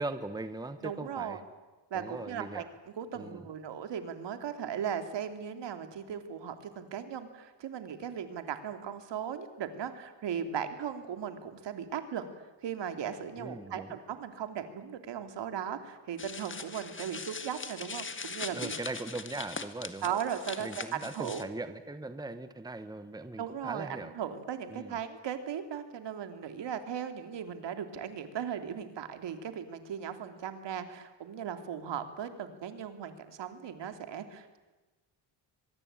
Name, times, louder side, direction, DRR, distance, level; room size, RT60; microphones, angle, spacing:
voice 1, 0.0-1.4 1.9-2.6 3.1-3.5 13.4-14.0 18.5-20.2 20.6-24.1 24.7-25.0, right 2 dB, 10° right, 10 dB, 1.3 m, -40 dB
voice 2, 0.8-1.4 1.9-12.2 12.6-18.7 20.0-20.8 21.1-21.4 23.4-34.6, right 8 dB, 65° right, 8 dB, 3.0 m, -37 dB
sound 1, 16.2-21.4, left 4 dB, 25° left, 1.9 m, -41 dB
24.0 x 22.0 x 9.0 m, 1.2 s
cardioid pair, 115°, 46 cm